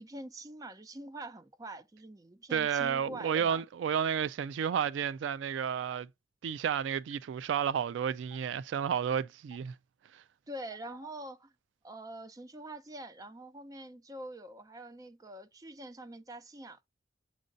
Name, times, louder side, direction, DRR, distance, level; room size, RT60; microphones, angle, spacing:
voice 1, 0.0-3.6 10.5-11.5 11.8-16.9, right 1 dB, 20° right, 0.5 m, -45 dB
voice 2, 2.5-6.1 6.4-9.7 10.1-10.2, right 8 dB, 75° right, 0.3 m, -31 dB
Stream, 5.9-6.0 7.1-7.2 8.3-8.4 9.5-9.6 10.7-11.1, left 2 dB, 30° left, 0.5 m, -52 dB
7.3 x 2.6 x 5.1 m
head